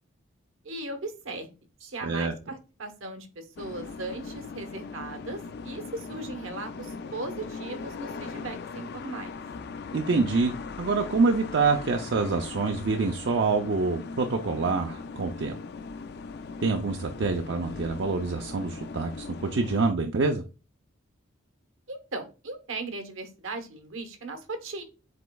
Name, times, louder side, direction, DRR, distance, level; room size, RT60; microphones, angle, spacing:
voice 1, 0.6-1.5 1.9-5.4 5.6-9.4 21.9-24.8, right 2 dB, 75° right, 6 dB, 1.0 m, -38 dB
voice 2, 1.8-2.3 9.9-10.5 10.8-15.6 16.6-20.4, right 4 dB, 60° right, 4 dB, 0.4 m, -26 dB
sound 1, 3.6-19.9, left 4 dB, 50° left, 0.3 m, -39 dB
7.7 x 3.0 x 2.3 m, 0.32 s
head